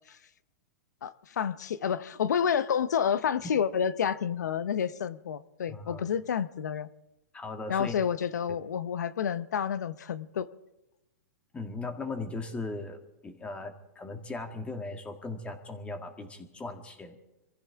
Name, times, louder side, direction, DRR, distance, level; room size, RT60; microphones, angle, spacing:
voice 1, 1.0-6.9 7.7-10.5, left 8 dB, 85° left, 0.8 m, -29 dB
voice 2, 5.7-6.1 7.3-8.0 11.5-17.2, left 3 dB, 15° left, 1.9 m, -38 dB
26.0 x 15.5 x 3.6 m
hypercardioid pair, 135°, 9 cm